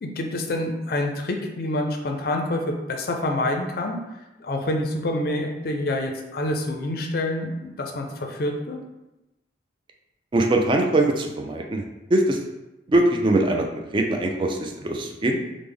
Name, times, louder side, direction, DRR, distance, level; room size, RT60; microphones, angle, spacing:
voice 1, 0.0-4.0 4.4-8.8, left 1 dB, 55° left, 3 dB, 0.4 m, -27 dB
voice 2, 10.3-11.8 12.1-12.4 12.9-13.7 13.9-15.4, right 2 dB, 25° right, 2 dB, 0.3 m, -21 dB
3.3 x 2.0 x 3.4 m, 0.97 s
head